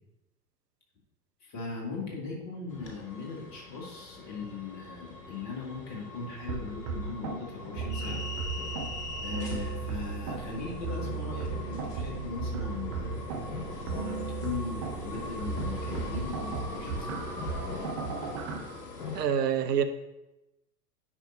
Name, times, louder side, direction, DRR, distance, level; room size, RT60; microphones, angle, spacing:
voice 1, 1.4-8.2 9.2-13.2 13.9-17.2, left 4 dB, 35° left, -2 dB, 2.1 m, -39 dB
sound 1, 2.7-19.2, left 3 dB, 65° left, 1.5 m, -41 dB
sound 2, 6.5-18.6, right 5 dB, 20° right, 0.4 m, -36 dB
voice 2, 19.1-19.8, right 8 dB, 70° right, 8 dB, 0.7 m, -26 dB
9.7 x 5.3 x 2.7 m, 0.97 s
figure-of-eight pair, 95°, 49 cm